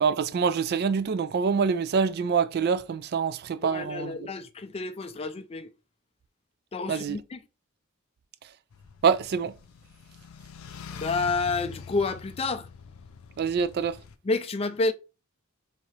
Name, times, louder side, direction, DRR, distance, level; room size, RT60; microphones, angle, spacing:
voice 1, 0.0-4.3 6.9-7.2 9.0-9.5 13.4-14.0, right 6 dB, 50° right, 0.3 m, -25 dB
voice 2, 3.6-5.7 6.7-7.4 10.9-12.7 14.2-14.9, left 3 dB, 30° left, 0.4 m, -29 dB
sound 1, 8.7-14.2, left 5 dB, 90° left, 0.5 m, -44 dB
2.9 x 2.8 x 4.4 m
head